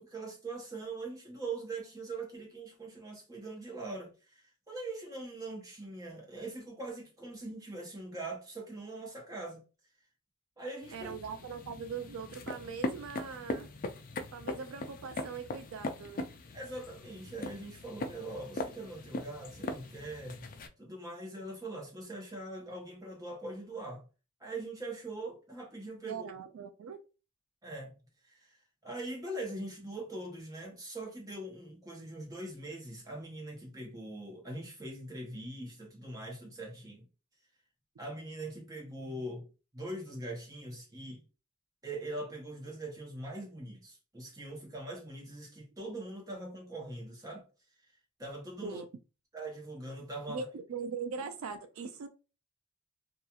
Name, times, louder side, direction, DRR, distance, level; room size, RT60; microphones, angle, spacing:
voice 1, 0.0-9.6 10.6-11.1 16.5-20.5 20.8-24.0 24.4-26.3 27.6-27.9 28.3-28.6 28.8-37.1 38.0-39.5 39.7-41.2 41.8-47.5 48.2-48.8 49.3-50.4, right 2 dB, 15° right, 0.8 m, -42 dB
sound 1, 10.8-20.7, left 2 dB, 40° left, 0.4 m, -40 dB
voice 2, 10.9-13.7 14.3-16.3 26.1-27.0 48.6-48.9 50.2-52.1, right 5 dB, 80° right, 0.4 m, -41 dB
2.8 x 2.4 x 2.3 m
head